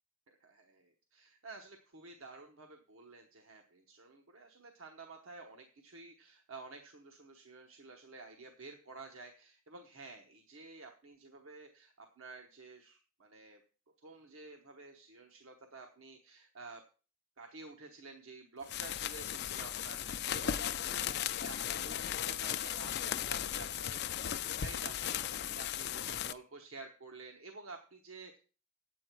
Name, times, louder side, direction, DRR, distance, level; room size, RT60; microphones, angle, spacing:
voice 1, 0.3-13.6 14.0-16.8 17.4-28.4, right 3 dB, 70° right, 3 dB, 1.0 m, -51 dB
sound 1, 18.6-26.3, left 10 dB, 50° left, 0.4 m, -36 dB
9.0 x 8.4 x 4.5 m, 0.37 s
head